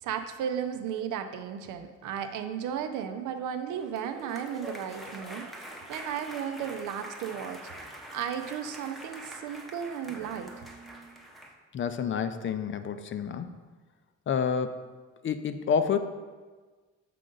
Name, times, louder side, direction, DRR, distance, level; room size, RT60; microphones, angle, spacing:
voice 1, 0.0-5.5 5.9-7.7 8.1-10.7, right 8 dB, 90° right, 8 dB, 0.6 m, -34 dB
sound 1, 3.7-11.5, right 1 dB, ahead, 0.7 m, -45 dB
voice 2, 11.7-13.5 14.3-14.8 15.2-16.0, left 7 dB, 40° left, 10 dB, 0.4 m, -29 dB
6.6 x 3.8 x 3.8 m, 1.4 s
cardioid pair, 90°, 30 cm